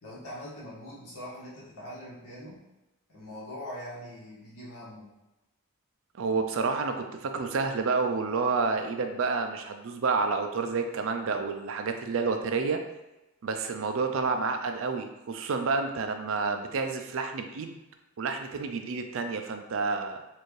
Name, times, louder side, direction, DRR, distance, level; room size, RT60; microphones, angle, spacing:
voice 1, 0.0-2.6 3.1-5.1, equal, 85° left, -7 dB, 1.5 m, -42 dB
voice 2, 6.2-12.8 13.4-17.8 18.2-20.2, right 4 dB, 60° right, 6 dB, 0.4 m, -29 dB
4.4 x 2.6 x 3.1 m, 1.0 s
head